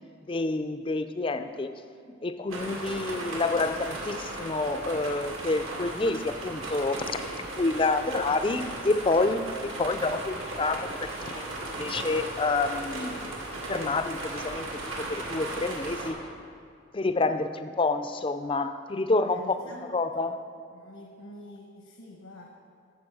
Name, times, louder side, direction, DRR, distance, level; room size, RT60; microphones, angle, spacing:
voice 1, 0.3-1.7 2.1-13.2 13.7-16.2 16.9-19.6 19.9-20.4, left 3 dB, 25° left, 10 dB, 0.4 m, -28 dB
sound 1, 2.5-16.1, right 2 dB, 80° right, 2.2 m, -36 dB
voice 2, 5.5-5.8 7.7-7.9 8.3-8.4 19.2-20.2 20.7-22.5, left 1 dB, 85° left, 1 dB, 1.0 m, -48 dB
13.5 x 7.1 x 4.7 m, 2.4 s
head